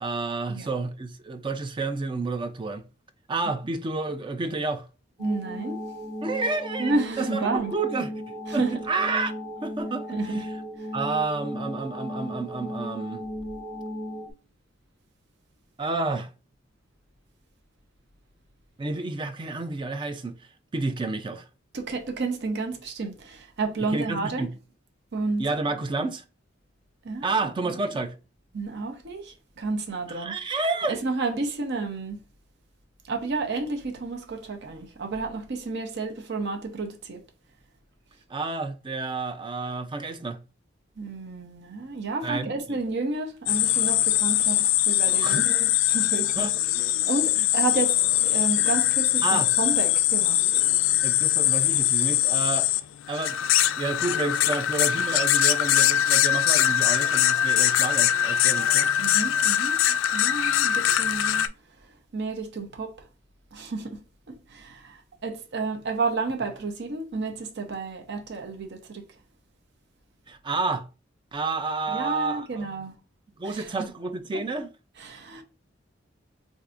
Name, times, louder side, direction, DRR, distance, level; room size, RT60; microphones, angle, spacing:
voice 1, 0.0-2.8 3.3-4.9 6.2-8.1 8.5-9.3 9.6-10.4 10.9-13.2 15.8-16.3 18.8-20.4 20.7-21.4 23.9-24.5 25.4-26.2 27.2-28.2 30.1-31.0 38.3-40.4 42.2-42.8 45.2-45.4 46.4-46.5 47.4-47.5 49.2-49.5 51.0-52.7 53.1-58.9 70.3-70.9 71.3-72.7 73.4-74.7, right 3 dB, 25° right, 0.4 m, -30 dB
sound 1, 5.2-14.3, equal, 20° left, 0.7 m, -36 dB
voice 2, 5.2-5.8 6.8-7.7 8.5-8.8 10.1-10.4 10.8-10.9 21.7-24.5 25.1-25.5 27.0-27.3 27.6-27.7 28.5-30.4 30.9-32.2 33.0-37.2 41.0-46.5 47.0-50.4 59.0-61.5 61.8-63.0 63.5-69.0 71.9-73.0 73.4-73.9 74.3-74.4 75.0-75.4, right 3 dB, 60° right, 0.7 m, -31 dB
sound 2, 43.5-61.5, left 12 dB, 90° left, 0.3 m, -22 dB
4.6 x 2.6 x 2.5 m
head